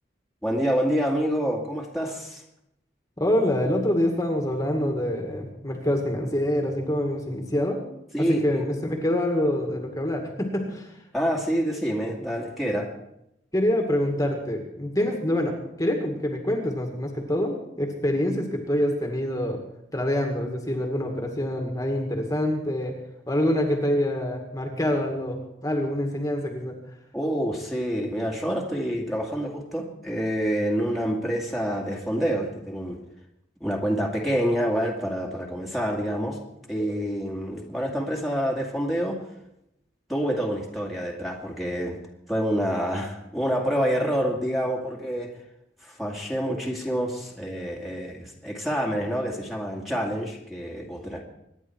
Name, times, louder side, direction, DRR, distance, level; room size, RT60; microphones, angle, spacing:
voice 1, 0.4-2.4 8.1-8.6 11.1-12.9 27.1-33.0 33.6-36.4 36.7-39.2 40.1-42.0 42.3-45.3 45.8-51.2, equal, ahead, -2 dB, 2.1 m, -27 dB
voice 2, 3.2-7.8 8.2-10.9 13.5-19.6 19.9-22.9 23.3-26.8, left 1 dB, 20° left, 2 dB, 2.0 m, -26 dB
25.0 x 10.0 x 4.6 m, 0.82 s
head